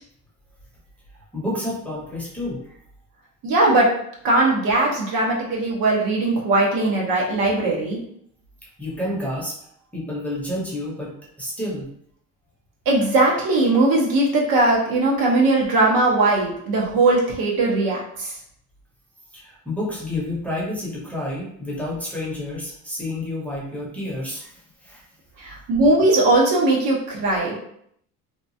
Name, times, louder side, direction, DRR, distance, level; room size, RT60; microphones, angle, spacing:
voice 1, 1.3-2.7 8.8-11.1 11.4-11.9 19.3-24.5 24.8-25.0 25.4-25.6, left 1 dB, 5° left, -7 dB, 0.7 m, -29 dB
voice 2, 3.4-3.9 4.2-8.0 12.9-18.3 25.4-27.6, right 2 dB, 70° right, -2 dB, 0.9 m, -19 dB
2.9 x 2.3 x 2.6 m, 0.69 s
cardioid pair, 145°, 36 cm